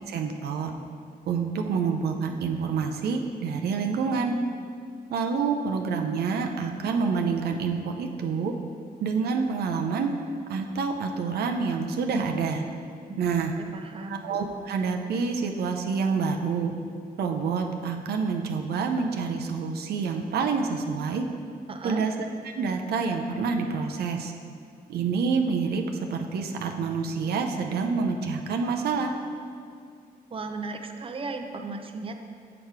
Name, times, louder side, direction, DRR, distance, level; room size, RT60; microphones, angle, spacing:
voice 1, 0.1-0.7 1.3-4.4 5.1-8.5 9.0-10.1 10.5-12.6 13.2-13.5 14.1-16.7 17.2-21.2 21.8-22.1 22.4-24.3 24.9-25.8 26.1-29.2, right 5 dB, 85° right, 3 dB, 0.5 m, -27 dB
voice 2, 13.6-14.2 21.7-22.0 30.3-32.1, right 3 dB, 35° right, 5 dB, 0.6 m, -35 dB
6.6 x 6.0 x 4.7 m, 2.3 s
cardioid pair, 75°, 16 cm